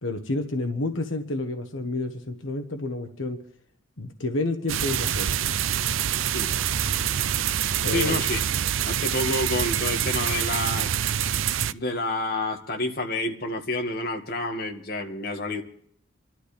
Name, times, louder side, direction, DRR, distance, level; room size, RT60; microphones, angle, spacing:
voice 1, 0.0-3.4 4.0-5.4 7.8-8.2, left 2 dB, 80° left, 5 dB, 1.3 m, -29 dB
sound 1, 4.7-11.7, right 9 dB, 85° right, 0.5 m, -26 dB
voice 2, 7.9-8.4 8.8-10.9 11.7-15.6, left 2 dB, 50° left, 3 dB, 1.9 m, -29 dB
27.5 x 12.5 x 3.4 m, 0.65 s
head